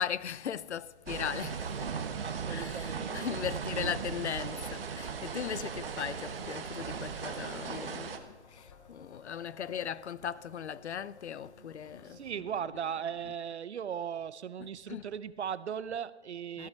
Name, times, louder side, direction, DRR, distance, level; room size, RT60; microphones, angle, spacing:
voice 1, 0.0-2.0 2.5-12.3 13.2-13.3 14.6-15.1 16.5-16.7, left 8 dB, 75° left, 0.5 m, -38 dB
sound 1, 1.1-8.2, right 6 dB, 55° right, 1.2 m, -37 dB
voice 2, 2.2-3.2 3.7-3.9 12.1-16.7, right 8 dB, 70° right, 0.6 m, -38 dB
sound 2, 5.4-13.2, left 4 dB, 30° left, 1.7 m, -57 dB
14.0 x 9.4 x 4.2 m
hypercardioid pair, 150°, 34 cm